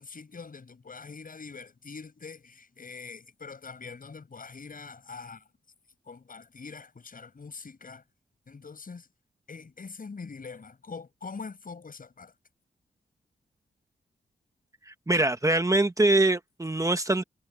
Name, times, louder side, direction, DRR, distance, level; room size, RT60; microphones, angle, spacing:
voice 1, 0.0-5.5 6.0-8.0 8.5-9.1 9.5-12.3, left 4 dB, 50° left, 6.9 m, -43 dB
voice 2, 14.9-17.2, right 2 dB, 15° right, 1.2 m, -23 dB
cardioid pair, 65°, 18 cm